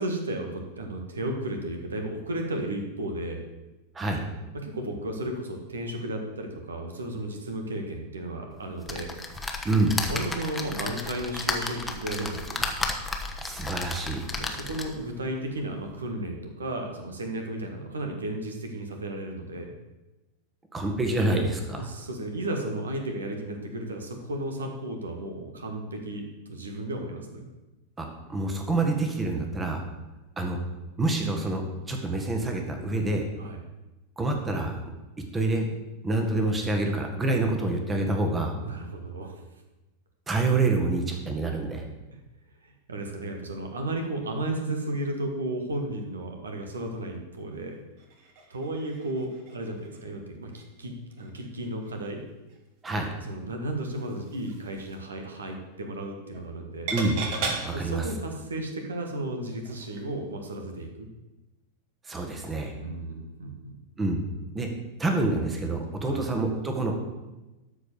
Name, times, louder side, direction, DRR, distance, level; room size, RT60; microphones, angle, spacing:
voice 1, 0.0-3.4 4.5-9.1 10.1-12.9 14.2-19.7 21.9-27.5 33.4-33.6 38.6-39.4 42.6-47.8 48.5-52.2 53.3-57.0 57.7-61.1 62.8-63.7 66.0-66.2, right 1 dB, 70° right, 4 dB, 1.7 m, -34 dB
sound 1, 8.9-15.1 15.6-15.7 16.0-16.1, left 2 dB, 10° left, 1.2 m, -33 dB
voice 2, 9.6-10.0 13.4-14.3 20.7-21.9 28.0-29.8 30.4-30.6 31.0-33.3 34.2-34.8 35.3-35.7 36.0-38.5 40.3-41.8 52.8-53.1 56.9-57.2 57.6-58.0 62.0-62.7 64.0-64.2 64.5-64.7 65.0-66.9, right 2 dB, 15° right, 3 dB, 1.6 m, -27 dB
sound 2, 48.0-50.1 50.5-50.7 51.1-52.1 52.5-52.6 53.7-55.1 56.3-56.6 56.9-58.2 59.6-60.1 60.4-60.5, right 4 dB, 45° right, 1.9 m, -37 dB
13.0 x 5.2 x 6.9 m, 1.1 s
figure-of-eight pair, 90°, 0 cm